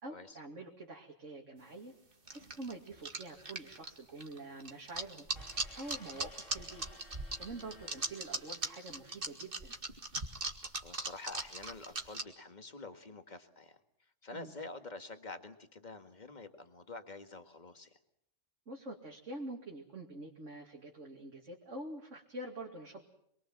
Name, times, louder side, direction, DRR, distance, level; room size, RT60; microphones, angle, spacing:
voice 1, 0.0-1.9 2.3-5.3 5.8-6.8 7.4-9.7 14.3-14.5 18.7-23.1, right 2 dB, 75° right, 0 dB, 2.9 m, -46 dB
sound 1, 2.3-12.2, right 2 dB, 45° right, 2.3 m, -39 dB
sound 2, 5.4-9.6, left 2 dB, 75° left, 2.9 m, -58 dB
voice 2, 10.8-18.0, left 3 dB, 35° left, 7 dB, 2.0 m, -48 dB
27.5 x 22.5 x 7.5 m, 0.73 s
omnidirectional pair, 1.3 m